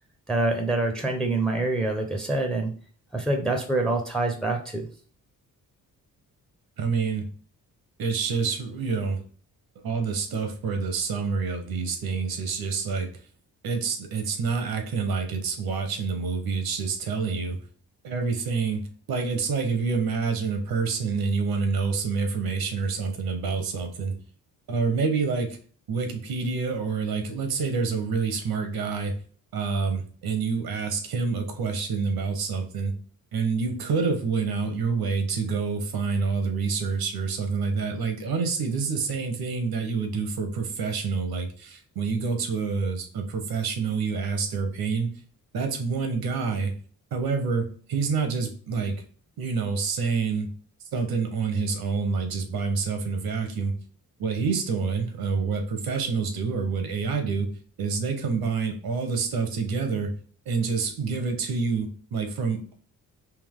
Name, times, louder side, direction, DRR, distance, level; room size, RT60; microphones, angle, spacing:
voice 1, 0.3-2.7 3.1-4.9, right 2 dB, ahead, 4 dB, 0.7 m, -26 dB
voice 2, 6.8-7.3 8.0-9.2 9.8-13.1 13.6-17.6 18.0-24.2 24.7-25.6 25.9-29.1 29.5-32.9 33.3-45.1 45.5-46.7 47.1-48.9 49.4-50.5 50.9-53.7 54.2-57.5 57.8-60.1 60.5-62.7, right 5 dB, 80° right, 5 dB, 1.0 m, -27 dB
3.6 x 2.8 x 3.5 m, 0.43 s
cardioid pair, 100°, 36 cm